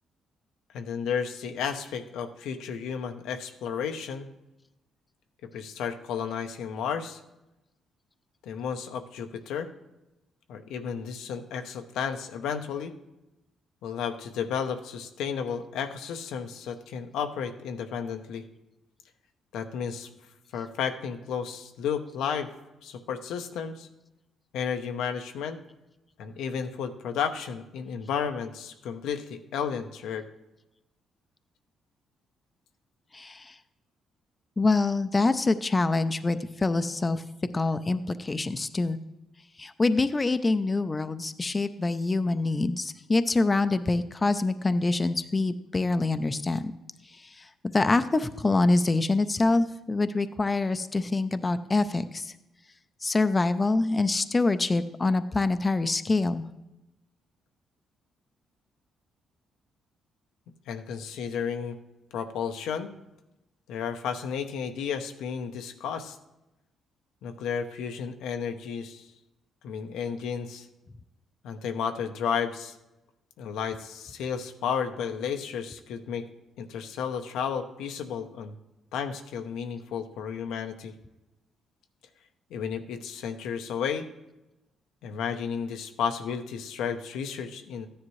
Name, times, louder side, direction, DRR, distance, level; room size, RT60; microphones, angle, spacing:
voice 1, 0.7-4.3 5.5-7.2 8.4-9.7 10.5-12.9 13.8-18.4 19.5-20.1 20.5-22.5 22.8-23.9 24.5-25.6 26.2-30.3 60.7-61.8 62.1-62.9 63.7-66.2 67.2-69.1 69.6-70.7 71.4-72.8 73.4-76.2 76.6-78.5 78.9-80.9 82.5-84.1 85.0-87.9, left 7 dB, 85° left, 6 dB, 0.8 m, -32 dB
voice 2, 33.1-33.6 34.6-37.2 37.5-39.0 39.6-46.7 47.1-52.3 53.0-56.4, left 3 dB, 25° left, 11 dB, 0.5 m, -25 dB
13.5 x 10.0 x 3.1 m, 0.96 s
cardioid pair, 90°, 0 cm